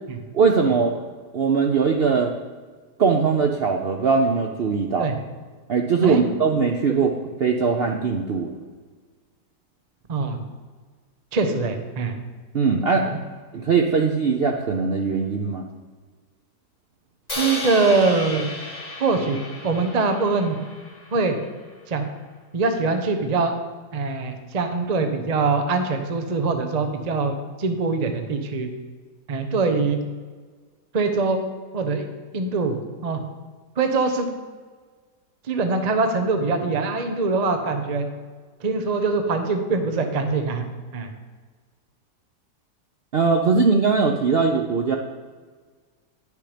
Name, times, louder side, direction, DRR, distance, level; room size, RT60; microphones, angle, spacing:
voice 1, 0.3-1.0 1.3-2.3 3.0-5.1 5.7-7.1 7.4-8.5 12.5-13.1 13.6-15.6 43.1-45.0, right 5 dB, 80° right, 3 dB, 0.5 m, -20 dB
voice 2, 11.3-12.1 13.6-13.7 17.4-18.5 19.0-19.4 19.6-20.6 21.1-21.4 21.9-22.1 22.5-23.5 23.9-28.7 29.3-30.0 30.9-31.4 31.7-32.1 32.3-32.8 33.0-33.2 33.8-34.3 35.5-38.1 38.6-40.6 40.9-41.1, right 3 dB, 40° right, 6 dB, 0.6 m, -23 dB
Crash cymbal, 17.3-21.5, left 2 dB, 25° left, 1.7 m, -33 dB
10.0 x 6.6 x 5.0 m, 1.5 s
omnidirectional pair, 1.9 m